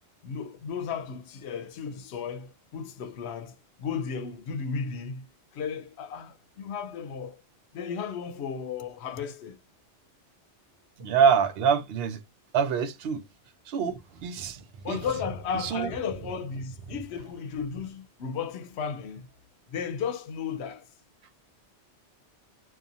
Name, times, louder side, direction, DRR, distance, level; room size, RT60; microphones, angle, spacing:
voice 1, 0.2-5.3 5.5-7.4 7.7-9.6 13.8-14.0 14.8-19.3 19.7-20.9, left 6 dB, 70° left, 0.8 m, -34 dB
voice 2, 11.0-12.2 12.5-13.2 13.7-15.0 15.6-15.9, right 7 dB, 65° right, 0.7 m, -25 dB
2.7 x 2.3 x 2.5 m
omnidirectional pair, 1.2 m